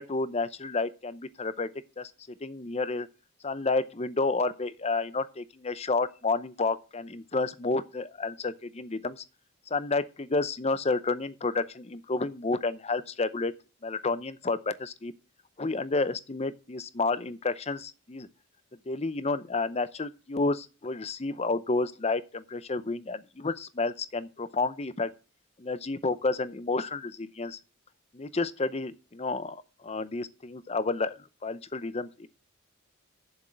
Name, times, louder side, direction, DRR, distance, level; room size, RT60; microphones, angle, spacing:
voice 1, 0.0-1.7 2.0-3.1 3.4-9.2 9.7-13.5 13.8-15.1 15.6-18.3 18.8-25.1 25.6-27.6 28.1-32.3, left 3 dB, 30° left, 0.6 m, -30 dB
7.3 x 6.2 x 7.7 m
head